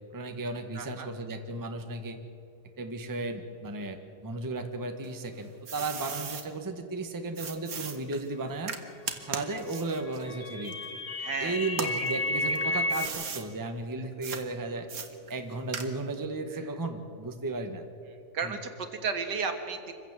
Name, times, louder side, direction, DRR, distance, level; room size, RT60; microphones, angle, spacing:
voice 1, 0.1-2.2 2.8-8.7 9.2-10.8 11.4-14.9 15.3-17.8 18.4-18.6, right 2 dB, 15° right, 6 dB, 1.1 m, -35 dB
voice 2, 0.8-1.1 11.2-11.6 12.7-12.8 18.3-19.9, right 5 dB, 70° right, 6 dB, 2.1 m, -33 dB
sound 1, 5.0-6.5 7.4-11.3 11.7-13.5 14.2-14.4 14.9-16.2, right 6 dB, 55° right, 1.6 m, -38 dB
sound 2, 9.9-13.1, left 2 dB, 35° left, 0.9 m, -31 dB
25.0 x 15.5 x 7.5 m, 2.6 s
omnidirectional pair, 2.0 m